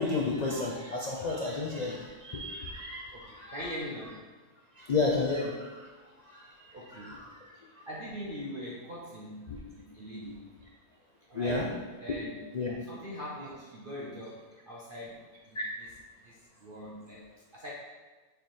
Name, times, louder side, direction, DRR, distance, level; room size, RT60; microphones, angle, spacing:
voice 1, 0.0-3.7 4.8-5.9 6.3-7.8 9.5-9.6 10.3-10.4 11.3-11.7 12.1-12.2 12.5-12.8 15.5-15.6, left 3 dB, 65° left, -2 dB, 0.4 m, -32 dB
voice 2, 3.1-4.2 6.7-7.2 7.9-9.4 9.7-10.4 11.3-11.6 12.0-12.4 12.9-15.6 16.2-17.2 17.5-17.7, equal, 45° right, -5 dB, 0.8 m, -42 dB
6.6 x 3.3 x 4.4 m, 1.3 s
omnidirectional pair, 1.7 m